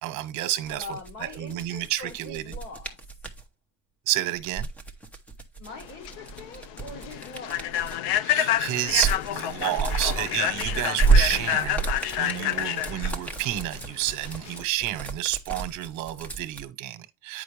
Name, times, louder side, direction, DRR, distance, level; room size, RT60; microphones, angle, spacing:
voice 1, 0.0-2.4 4.1-4.7 8.2-17.4, right 15 dB, 55° right, 1.2 m, -30 dB
sound 1, 0.6-3.4 4.4-8.1 8.6-16.6, right 4 dB, 5° left, 0.8 m, -29 dB
voice 2, 0.7-3.0 5.6-7.7, left 3 dB, 45° left, 2.8 m, -42 dB
Human voice / Train, 5.8-14.6, left 12 dB, 80° left, 0.7 m, -29 dB
9.3 x 5.4 x 3.3 m
cardioid pair, 170°, 36 cm